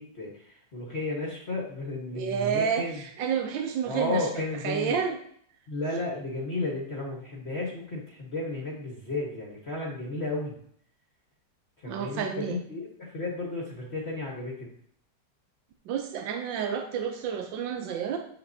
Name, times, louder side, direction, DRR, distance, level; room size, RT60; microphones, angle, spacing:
voice 1, 0.0-3.0 3.8-5.0 5.7-10.6 11.8-14.7, left 2 dB, 40° left, -3 dB, 1.4 m, -33 dB
voice 2, 2.1-4.3 4.6-5.2 11.9-12.6 15.9-18.2, right 7 dB, 85° right, 4 dB, 1.5 m, -30 dB
7.8 x 7.5 x 2.7 m, 0.64 s
omnidirectional pair, 2.0 m